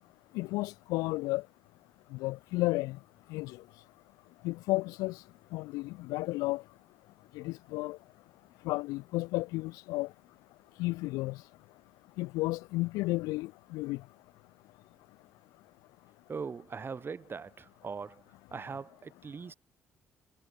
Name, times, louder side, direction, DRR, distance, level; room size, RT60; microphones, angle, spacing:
voice 1, 0.3-1.4 2.1-3.0 3.3-3.6 4.4-5.2 5.5-6.6 7.3-8.0 8.6-10.1 10.8-11.4 12.2-14.0, left 21 dB, 70° left, 0.4 m, -32 dB
voice 2, 16.3-18.2 18.5-19.5, right 5 dB, 35° right, 1.1 m, -40 dB
hypercardioid pair, 45°, 6 cm